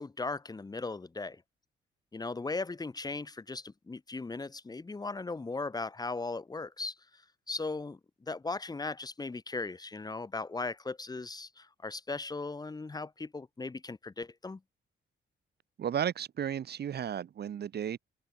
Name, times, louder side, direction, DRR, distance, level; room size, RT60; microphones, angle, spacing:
voice 1, 0.0-1.4 2.1-6.9 7.5-14.6, left 3 dB, 20° left, 1.7 m, -38 dB
voice 2, 15.8-18.0, right 9 dB, 55° right, 1.5 m, -34 dB
cardioid pair, 145°, 20 cm